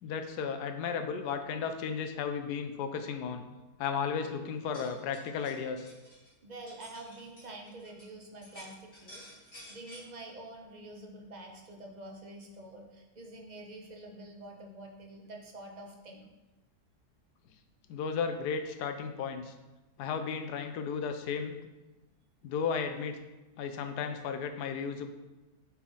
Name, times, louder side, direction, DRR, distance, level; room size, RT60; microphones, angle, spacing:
voice 1, 0.0-3.4 3.8-5.9 17.9-19.5 20.0-21.6 22.4-23.2 23.6-25.1, left 6 dB, 90° left, 8 dB, 1.2 m, -34 dB
sound 1, 4.6-8.1 8.4-10.0, equal, 55° left, 3.1 m, -52 dB
voice 2, 6.4-16.3, right 2 dB, 35° right, 1 dB, 0.8 m, -47 dB
8.4 x 4.3 x 3.9 m, 1.1 s
omnidirectional pair, 1.7 m